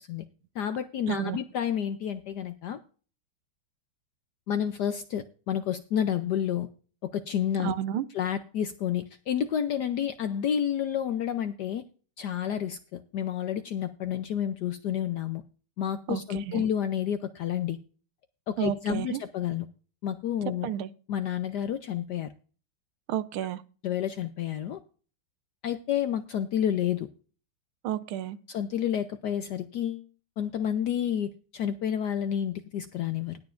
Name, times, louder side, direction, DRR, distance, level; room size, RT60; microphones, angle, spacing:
voice 1, 0.6-2.8 4.5-6.7 7.0-7.7 8.1-11.8 12.2-15.4 15.8-17.8 18.5-19.7 20.0-20.7 21.1-22.3 23.8-24.8 25.6-27.1 28.5-30.1 30.4-33.4, left 9 dB, 70° left, 10 dB, 1.0 m, -30 dB
voice 2, 1.1-1.4 7.6-8.0 16.1-16.6 18.6-19.2 20.6-20.9 23.1-23.6 27.8-28.4, right 11 dB, 80° right, 14 dB, 1.5 m, -31 dB
20.0 x 6.9 x 2.5 m, 0.38 s
omnidirectional pair, 2.4 m